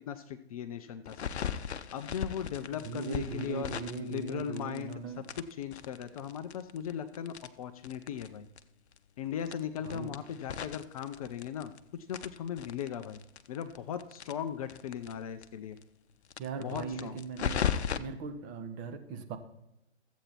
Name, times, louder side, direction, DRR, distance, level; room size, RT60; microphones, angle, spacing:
voice 1, 0.1-1.5 1.9-8.5 9.2-13.2 13.5-15.8 16.6-17.2, left 9 dB, 30° left, 9 dB, 0.5 m, -38 dB
sound 1, 1.1-4.9 5.2-8.3 8.6-8.7 8.9-9.0 9.4-11.8 12.1-15.1 15.4-15.5 15.8-15.9 16.3-18.0, left 8 dB, 65° left, 0.8 m, -37 dB
voice 2, 2.7-5.2 9.8-10.1 16.4-17.7 18.0-19.4, right 5 dB, 25° right, 7 dB, 1.0 m, -39 dB
13.0 x 8.1 x 4.5 m, 0.87 s
figure-of-eight pair, 125°, 35 cm